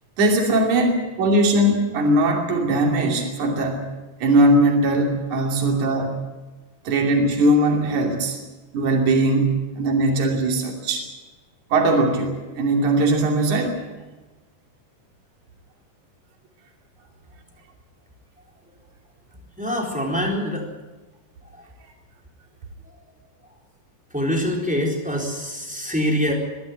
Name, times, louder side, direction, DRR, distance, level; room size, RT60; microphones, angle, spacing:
voice 1, 0.2-3.9 4.2-6.1 6.8-8.4 8.7-11.0 11.7-13.8, right 1 dB, 65° right, 1 dB, 4.2 m, -20 dB
voice 2, 19.6-20.6 24.1-26.3, equal, ahead, 0 dB, 3.7 m, -24 dB
22.5 x 13.5 x 9.4 m, 1.2 s
omnidirectional pair, 3.8 m